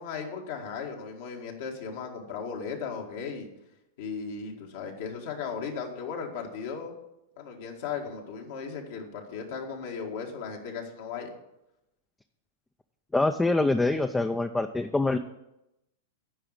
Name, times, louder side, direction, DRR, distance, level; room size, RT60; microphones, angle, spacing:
voice 1, 0.0-3.5 4.0-6.9 7.4-11.3, left 6 dB, 65° left, 0 dB, 1.9 m, -36 dB
voice 2, 13.1-15.2, left 2 dB, 10° left, 8 dB, 0.4 m, -25 dB
10.0 x 4.9 x 7.8 m, 0.90 s
hypercardioid pair, 120°, 0 cm